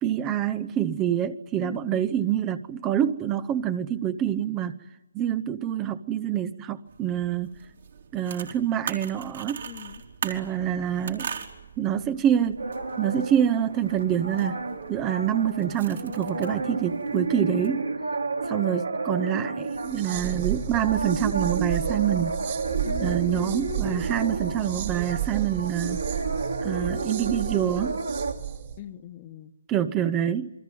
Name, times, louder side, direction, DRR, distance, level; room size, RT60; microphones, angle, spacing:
voice 1, 0.0-4.8 5.1-7.5 8.1-9.6 10.2-11.3 11.8-12.6 13.0-14.6 14.9-17.9 18.5-22.4 23.0-26.0 26.6-28.0 29.7-30.5, right 10 dB, 20° right, 0.9 m, -26 dB
voice 2, 1.6-2.1 9.6-10.0 22.8-24.0 28.8-29.5, left 11 dB, 30° left, 1.4 m, -41 dB
sound 1, 6.9-17.7, right 7 dB, 60° right, 3.9 m, -41 dB
sound 2, 12.6-28.3, right 3 dB, 85° right, 3.7 m, -32 dB
sound 3, 19.7-28.8, right 10 dB, 40° right, 2.9 m, -33 dB
28.0 x 23.0 x 9.2 m
figure-of-eight pair, 145°, 0 cm